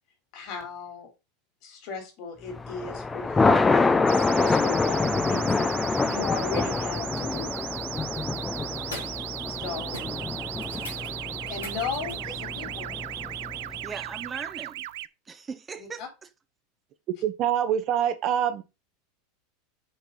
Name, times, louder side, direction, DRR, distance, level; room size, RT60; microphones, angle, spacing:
voice 1, 0.3-1.1 1.6-3.7 4.1-7.5 9.6-10.1 11.5-13.0 15.8-16.1, left 5 dB, 55° left, 3.7 m, -36 dB
Thunder, 2.5-13.9, left 3 dB, 15° left, 0.8 m, -26 dB
sound 1, 4.1-15.1, right 16 dB, 65° right, 0.4 m, -37 dB
sound 2, 8.1-8.4 8.8-9.3 9.5-9.6 9.9-12.3 14.3-14.4, left 2 dB, 90° left, 2.7 m, -43 dB
voice 2, 8.1-8.9 10.0-10.4 10.8-11.1 13.8-14.9 15.3-16.0, right 5 dB, 25° right, 1.0 m, -40 dB
voice 3, 17.2-18.6, right 9 dB, 45° right, 1.3 m, -25 dB
6.7 x 4.5 x 5.5 m
hypercardioid pair, 85°, 0 cm